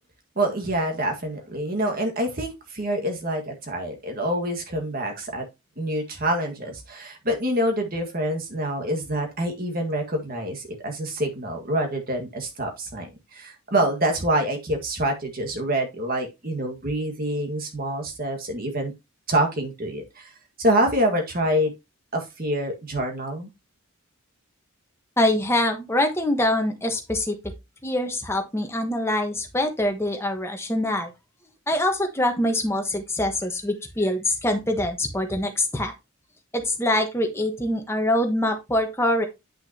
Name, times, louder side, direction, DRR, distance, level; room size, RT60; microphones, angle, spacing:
voice 1, 0.3-5.4 5.8-18.9 19.3-20.3 20.6-21.7 22.1-23.5, right 1 dB, 40° right, 3 dB, 1.7 m, -26 dB
voice 2, 25.2-27.4 27.8-31.1 31.7-35.9 36.5-39.3, left 1 dB, 10° left, 4 dB, 1.2 m, -24 dB
8.9 x 5.8 x 2.8 m, 0.24 s
head